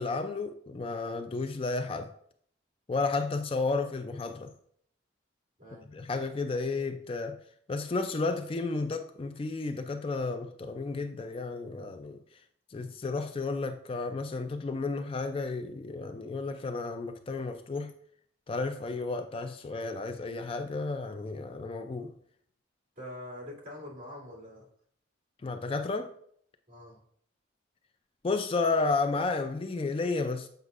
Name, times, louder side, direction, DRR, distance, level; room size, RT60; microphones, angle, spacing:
voice 1, 0.0-2.1 2.9-4.5 5.9-7.4 7.7-12.2 12.7-17.9 18.5-22.1 25.4-26.1 28.2-30.5, left 3 dB, 30° left, 0.3 m, -32 dB
voice 2, 5.6-5.9 23.0-24.7 26.7-27.0, left 1 dB, 45° right, 2.4 m, -44 dB
7.9 x 5.5 x 2.4 m
head